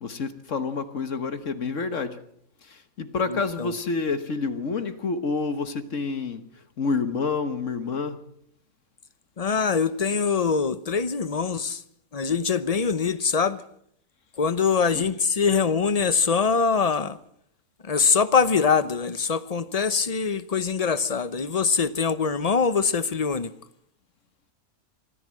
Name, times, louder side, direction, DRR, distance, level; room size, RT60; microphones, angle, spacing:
voice 1, 0.0-2.2 2.6-6.4 6.8-8.2 14.9-15.0, left 4 dB, 60° left, 1.6 m, -28 dB
voice 2, 3.3-3.7 9.4-11.8 12.1-13.6 14.4-17.2 17.8-23.5, left 5 dB, 30° left, 0.9 m, -23 dB
24.0 x 14.5 x 7.6 m
omnidirectional pair, 1.5 m